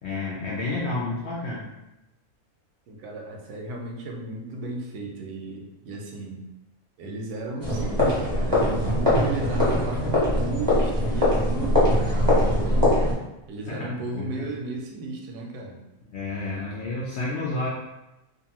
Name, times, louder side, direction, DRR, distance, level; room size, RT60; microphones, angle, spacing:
voice 1, 0.0-1.7 13.7-14.5 16.0-17.7, left 2 dB, 70° left, -5 dB, 0.6 m, -30 dB
voice 2, 2.9-6.4 7.0-12.9 13.5-15.8, right 2 dB, 85° right, 1 dB, 1.1 m, -35 dB
sound 1, 7.6-13.1, left 1 dB, 20° right, 0.7 m, -22 dB
2.6 x 2.5 x 2.8 m, 0.94 s
omnidirectional pair, 1.6 m